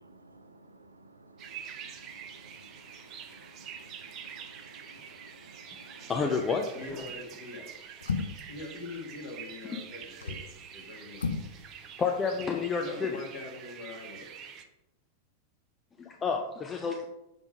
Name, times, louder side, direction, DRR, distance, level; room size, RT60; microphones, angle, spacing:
voice 1, 0.2-0.5 1.8-1.9 2.4-2.5 3.4-6.1, right 2 dB, 80° right, 8 dB, 0.5 m, -55 dB
sound 1, 1.4-14.6, right 8 dB, 35° right, 0.8 m, -46 dB
voice 2, 6.1-6.6 6.9-7.1 12.0-13.2 16.0-17.0, left 5 dB, 20° left, 3 dB, 0.5 m, -30 dB
voice 3, 6.7-7.7 8.5-11.3 12.8-14.3, left 2 dB, 50° left, 0 dB, 1.9 m, -43 dB
sound 2, 6.9-7.2 8.0-8.6 10.0-10.5 11.1-11.6 11.8-11.9, left 4 dB, 75° left, 0.5 m, -33 dB
7.0 x 3.5 x 5.0 m, 0.94 s
figure-of-eight pair, 90°, 0 cm